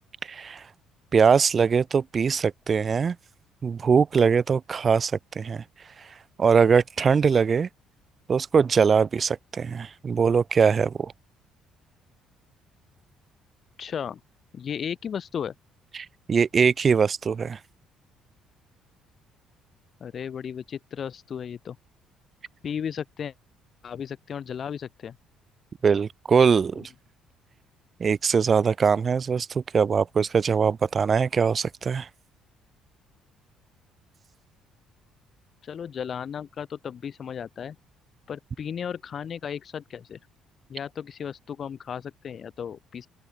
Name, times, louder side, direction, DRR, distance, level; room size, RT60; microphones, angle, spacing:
voice 1, 0.2-0.6 1.1-3.2 3.6-5.6 6.4-7.7 8.3-11.1 15.9-17.6 25.8-26.9 28.0-32.1, right 6 dB, 35° right, 0.7 m, -22 dB
voice 2, 13.8-14.2 14.5-15.5 20.0-21.8 22.6-23.3 23.8-25.2 26.8-26.9 35.6-37.8 38.3-40.2 40.7-43.1, left 8 dB, 45° left, 2.3 m, -35 dB
open air
cardioid pair, 120°, 0 cm